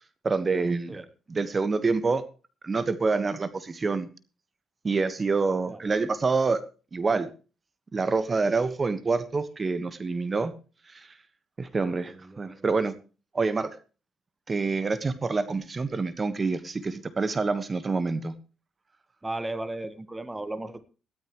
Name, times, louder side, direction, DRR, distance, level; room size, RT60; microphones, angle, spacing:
voice 1, 0.2-1.0 1.3-2.2 2.6-4.1 4.8-6.6 6.9-7.3 7.9-10.5 10.9-11.1 11.6-12.9 13.3-13.8 14.5-18.3, right 4 dB, 30° right, 13 dB, 1.3 m, -27 dB
voice 2, 11.8-12.6 19.2-20.8, right 2 dB, 15° right, 13 dB, 1.3 m, -36 dB
18.0 x 13.0 x 3.1 m, 0.34 s
cardioid pair, 90°, 0 cm